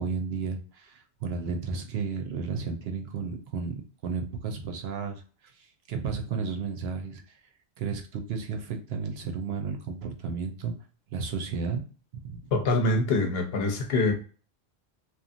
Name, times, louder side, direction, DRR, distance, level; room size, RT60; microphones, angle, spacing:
voice 1, 0.0-5.2 5.6-7.2 7.8-10.7 11.1-11.8 12.2-12.4, right 5 dB, 70° right, 0.8 m, -33 dB
voice 2, 12.5-14.1, left 2 dB, 65° left, 0.8 m, -24 dB
2.9 x 2.3 x 2.5 m
omnidirectional pair, 1.1 m